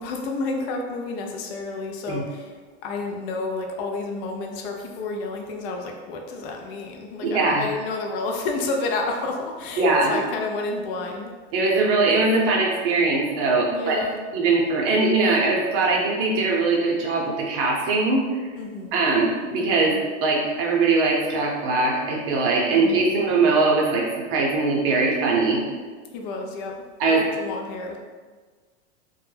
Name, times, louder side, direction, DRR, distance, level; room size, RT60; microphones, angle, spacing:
voice 1, 0.0-11.3 13.6-14.2 18.5-19.0 22.7-23.2 26.1-26.8 27.1-28.0, left 3 dB, 55° left, 2 dB, 0.4 m, -30 dB
voice 2, 7.2-7.7 9.8-10.2 11.5-14.0 14.3-18.2 18.9-20.0 20.2-25.6 27.0-27.2, right 3 dB, 40° right, -2 dB, 0.7 m, -21 dB
2.2 x 2.1 x 3.1 m, 1.4 s
supercardioid pair, 135°, 34 cm